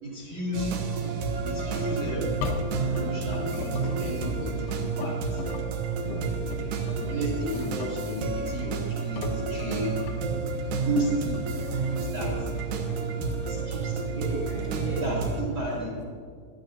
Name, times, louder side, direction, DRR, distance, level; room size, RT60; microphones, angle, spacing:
voice 1, 0.0-0.9 1.4-5.4 6.2-6.4 7.0-10.1 10.9-11.4 11.8-12.5 13.5-14.3 15.0-16.0, right 1 dB, 60° right, -5 dB, 1.6 m, -34 dB
sound 1, 0.5-15.4, right 4 dB, 85° right, 1.9 m, -30 dB
Engine, 0.9-15.1, left 4 dB, 75° left, 3.1 m, -38 dB
voice 2, 6.6-7.1 11.6-11.8 12.7-13.1 13.4-15.1, right 1 dB, 45° right, -6 dB, 0.8 m, -38 dB
17.5 x 12.0 x 2.8 m, 2.1 s
omnidirectional pair, 5.6 m